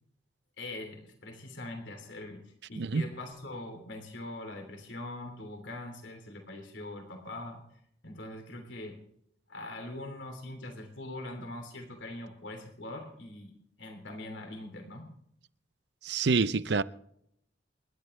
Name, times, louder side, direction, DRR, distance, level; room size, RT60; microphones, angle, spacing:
voice 1, 0.6-7.6 8.0-9.0 9.5-15.1, left 2 dB, 90° left, 3.2 m, -42 dB
voice 2, 16.0-16.8, right 4 dB, 70° right, 0.6 m, -27 dB
28.5 x 11.0 x 3.3 m
head